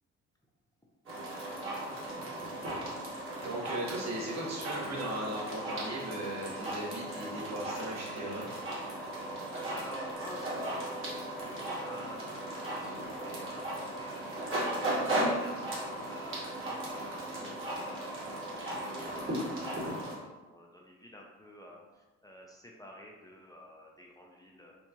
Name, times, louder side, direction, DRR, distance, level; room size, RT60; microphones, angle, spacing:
sound 1, 1.1-20.1, right 1 dB, 45° right, 1.5 m, -36 dB
voice 1, 3.4-8.5, right 1 dB, 60° right, -4 dB, 1.3 m, -37 dB
voice 2, 9.4-15.7 16.1-24.8, equal, 10° left, -2 dB, 0.5 m, -51 dB
4.5 x 2.5 x 2.8 m, 1.2 s
cardioid pair, 90°, 30 cm